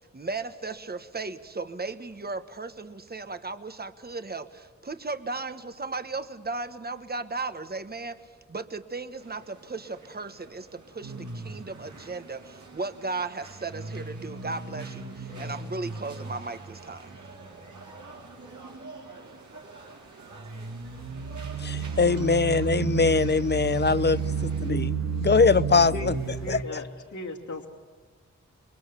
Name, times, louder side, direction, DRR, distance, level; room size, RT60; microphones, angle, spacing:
voice 1, 0.1-17.2, right 3 dB, 30° right, 10 dB, 1.3 m, -36 dB
sound 1, 9.1-24.7, right 3 dB, 80° right, 4.6 m, -49 dB
sound 2, 11.0-12.0 13.5-18.0 18.4-18.9 20.3-26.6, right 6 dB, 60° right, 1.9 m, -33 dB
voice 2, 21.6-24.9 25.2-26.1 26.5-26.8, left 4 dB, 35° left, 17 dB, 0.7 m, -22 dB
voice 3, 26.4-26.9 27.1-27.7, left 2 dB, 75° left, 0 dB, 2.6 m, -36 dB
27.0 x 22.0 x 7.0 m, 1.4 s
wide cardioid pair, 70°, 30 cm